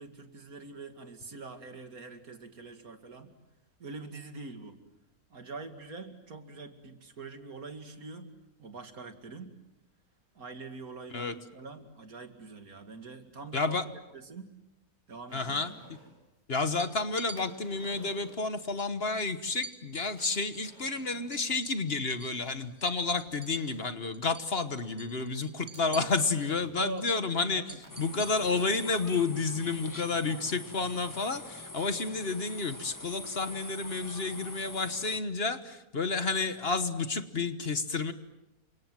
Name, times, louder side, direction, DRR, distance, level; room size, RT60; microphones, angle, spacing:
voice 1, 0.0-3.3 3.8-4.8 5.3-8.3 8.6-9.5 10.3-13.8 14.1-14.5 15.1-15.8 25.9-26.1 26.7-27.1 27.5-27.8, right 4 dB, 75° right, 7 dB, 2.7 m, -44 dB
voice 2, 13.5-13.8 15.3-15.7 16.5-27.6 28.0-38.1, left 3 dB, 45° left, 10 dB, 1.4 m, -30 dB
sound 1, 15.3-16.2 17.4-18.7 20.2-21.5 22.5-22.6 23.2-24.1 25.2-26.8 27.8-29.2, equal, 45° right, 6.1 m, -53 dB
sound 2, 16.8-17.4 18.8-18.9 19.2-19.3 19.6-22.4 22.7-23.9 24.1-24.5 24.8-28.9, right 3 dB, 30° right, 1.4 m, -47 dB
sound 3, 27.9-35.2, left 2 dB, 15° left, 1.1 m, -44 dB
29.5 x 26.0 x 7.6 m, 0.92 s
omnidirectional pair, 1.5 m